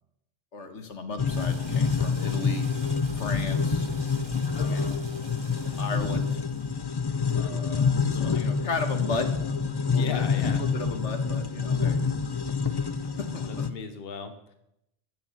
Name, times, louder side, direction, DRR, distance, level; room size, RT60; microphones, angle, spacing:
voice 1, 0.5-2.6 3.1-3.9 4.6-5.1 5.8-6.4 7.3-9.3 9.8-10.2 10.5-12.0 13.2-13.7, left 3 dB, 80° left, 7 dB, 1.7 m, -35 dB
sound 1, 1.2-13.7, left 5 dB, 35° left, 0.4 m, -27 dB
sound 2, 1.3-6.8, right 5 dB, 35° right, 0.5 m, -47 dB
voice 2, 4.6-4.9 7.4-7.6 8.1-8.7 9.9-10.6 13.5-14.5, left 5 dB, 55° left, 7 dB, 1.3 m, -38 dB
15.0 x 7.2 x 7.2 m, 0.82 s
omnidirectional pair, 1.2 m